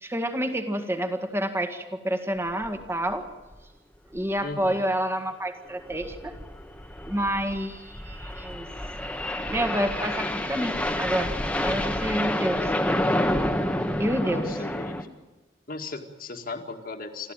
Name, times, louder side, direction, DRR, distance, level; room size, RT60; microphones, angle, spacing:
voice 1, 0.0-3.3 4.1-6.4 7.1-8.7 9.5-11.3 11.6-12.7 14.0-14.5, right 1 dB, 15° right, 7 dB, 1.9 m, -28 dB
sound 1, 2.6-2.8 3.1-3.2 3.5-3.6 4.1-4.4 5.7-15.0, left 1 dB, 5° left, 1.4 m, -29 dB
voice 2, 4.4-4.9 14.0-15.1 15.7-17.3, left 3 dB, 50° left, 5 dB, 2.1 m, -37 dB
28.0 x 13.5 x 9.1 m, 1.2 s
head